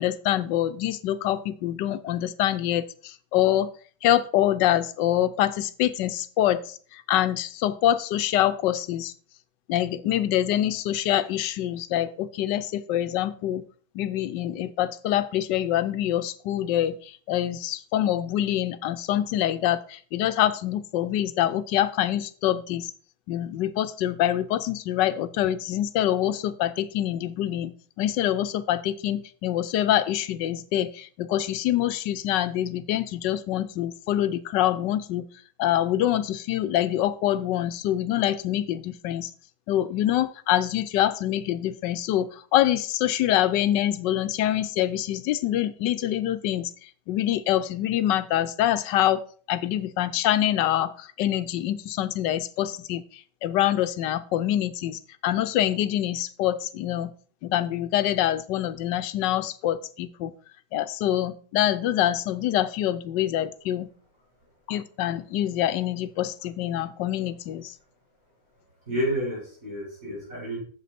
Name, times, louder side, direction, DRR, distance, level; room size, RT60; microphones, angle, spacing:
voice 1, 0.0-3.7 4.0-9.1 9.7-13.6 13.9-22.9 23.3-35.2 35.6-39.3 39.7-46.7 47.1-49.2 49.5-53.0 53.4-57.1 57.4-60.3 60.7-63.9 64.7-67.7, left 12 dB, 85° left, 13 dB, 1.3 m, -25 dB
voice 2, 68.9-70.6, equal, 50° right, -5 dB, 5.0 m, -30 dB
8.2 x 7.4 x 4.2 m, 0.43 s
omnidirectional pair, 1.9 m